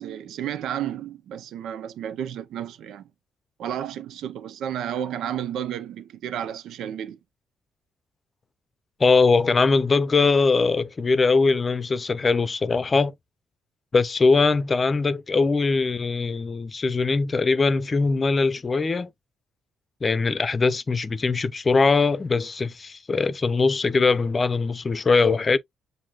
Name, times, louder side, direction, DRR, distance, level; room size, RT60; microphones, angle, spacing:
voice 1, 0.0-3.1 3.6-7.2, right 10 dB, 80° right, 0.6 m, -32 dB
voice 2, 9.0-13.1 13.9-19.1 20.0-25.6, left 4 dB, 30° left, 0.7 m, -21 dB
7.3 x 2.7 x 2.4 m
cardioid pair, 90°, 0 cm